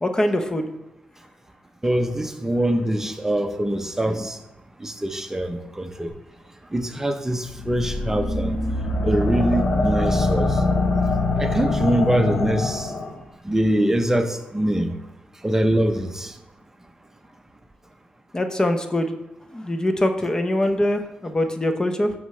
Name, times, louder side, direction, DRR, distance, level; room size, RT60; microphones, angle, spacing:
voice 1, 0.0-0.7 18.3-19.1 19.5-22.1, left 1 dB, 20° left, 6 dB, 0.8 m, -23 dB
voice 2, 1.8-4.4 4.8-6.1 6.7-8.6 9.0-10.6 11.4-12.9 13.4-15.0 15.4-16.3, right 1 dB, 15° right, 6 dB, 0.8 m, -23 dB
sound 1, 7.5-13.1, left 2 dB, 65° left, 1.4 m, -23 dB
9.1 x 6.1 x 3.3 m, 0.98 s
cardioid pair, 80°, 3 cm